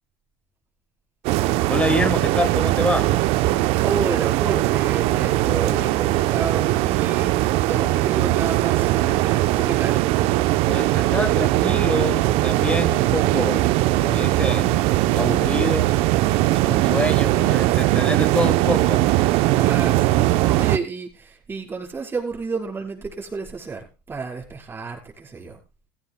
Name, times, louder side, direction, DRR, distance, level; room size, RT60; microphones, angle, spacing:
sound 1, 1.2-20.8, right 16 dB, 65° right, 0.8 m, -20 dB
voice 1, 1.7-3.1 10.7-13.7 14.0-14.9 15.1-16.0 16.5-19.2, left 2 dB, 10° left, 1.4 m, -27 dB
voice 2, 3.8-10.0 17.8-18.1 19.5-25.6, right 4 dB, 20° right, 5.1 m, -31 dB
16.5 x 15.0 x 2.3 m
supercardioid pair, 95°, 11 cm